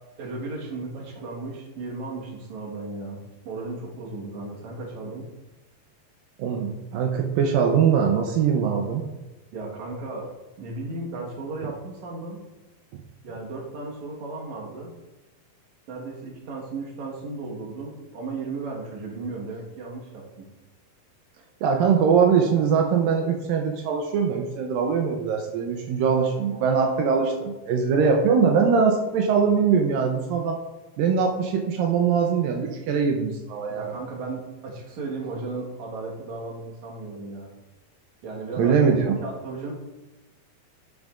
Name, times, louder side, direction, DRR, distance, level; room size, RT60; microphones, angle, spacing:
voice 1, 0.2-5.3 9.5-10.3 10.6-12.4 13.2-14.9 15.9-20.5 33.7-37.5 38.2-38.8 39.1-39.7, right 3 dB, 60° right, -2 dB, 2.6 m, -35 dB
voice 2, 6.4-9.0 21.6-30.6 31.0-33.9 38.6-39.2, right 6 dB, 85° right, 2 dB, 2.4 m, -22 dB
10.5 x 7.0 x 2.5 m, 1.1 s
omnidirectional pair, 4.0 m